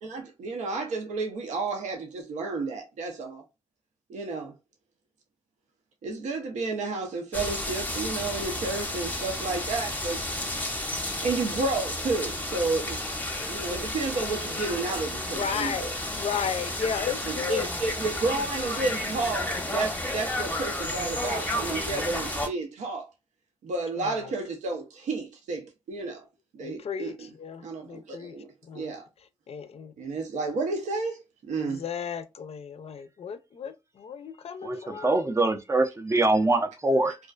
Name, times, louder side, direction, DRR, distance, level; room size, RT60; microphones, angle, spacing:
voice 1, 0.0-3.4 4.1-4.5 6.0-10.2 11.2-13.2 13.5-16.0 17.2-23.1 23.6-26.2 26.5-27.3 27.6-28.5 28.7-29.0 30.0-31.2 31.4-31.8, right 3 dB, 85° right, 0.5 m, -31 dB
sound 1, 7.3-22.5, left 1 dB, 15° left, 0.6 m, -32 dB
voice 2, 15.2-17.7 24.0-24.1 26.6-28.4 28.7-28.9 29.5-29.9 31.5-35.1, left 7 dB, 60° left, 0.4 m, -34 dB
voice 3, 34.6-37.2, right 2 dB, 25° right, 0.4 m, -24 dB
2.4 x 2.2 x 2.3 m
cardioid pair, 55°, 12 cm